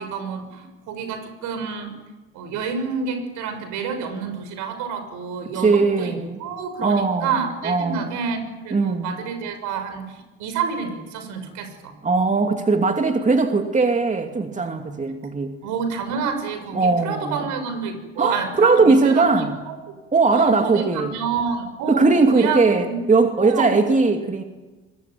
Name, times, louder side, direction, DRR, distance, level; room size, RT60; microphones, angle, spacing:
voice 1, 0.0-1.9 2.3-11.9 15.6-19.8 20.3-23.0 23.4-23.7, right 5 dB, 75° right, 8 dB, 6.4 m, -28 dB
voice 2, 5.5-6.4 6.8-7.3 7.6-8.1 8.7-9.1 12.0-15.6 16.7-17.4 18.2-19.6 20.1-21.2 21.9-24.4, right 3 dB, 25° right, 5 dB, 2.7 m, -19 dB
24.0 x 21.5 x 9.3 m, 1.1 s
supercardioid pair, 75°, 31 cm